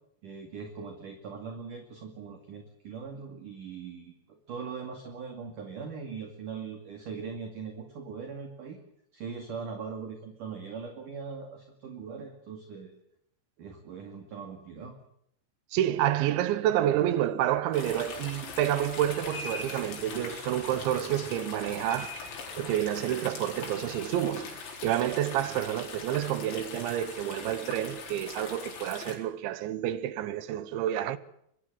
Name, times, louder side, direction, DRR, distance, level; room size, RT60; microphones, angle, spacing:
voice 1, 0.2-8.8 9.1-12.9 13.6-14.9, right 5 dB, 50° right, 3.2 m, -40 dB
voice 2, 15.7-22.2 22.6-31.2, right 12 dB, 75° right, 3.2 m, -29 dB
sound 1, 17.7-29.2, left 5 dB, 70° left, 6.7 m, -41 dB
24.5 x 23.0 x 7.9 m
omnidirectional pair, 5.6 m